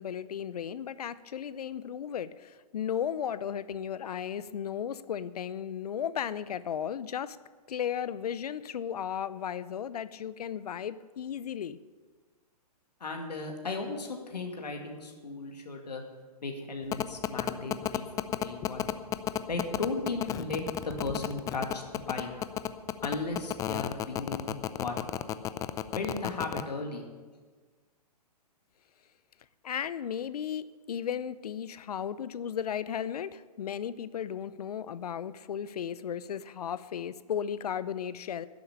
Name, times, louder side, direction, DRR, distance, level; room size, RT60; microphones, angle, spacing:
voice 1, 0.0-7.4 7.7-11.8 29.6-38.5, left 8 dB, 70° left, 16 dB, 0.7 m, -35 dB
voice 2, 13.0-16.0 16.4-18.9 19.5-22.3 23.0-25.1 25.9-27.0, left 3 dB, 90° left, 2 dB, 2.3 m, -36 dB
sound 1, 16.9-26.6, left 12 dB, 15° left, 0.5 m, -31 dB
11.0 x 7.8 x 10.0 m, 1.4 s
hypercardioid pair, 130°, 20 cm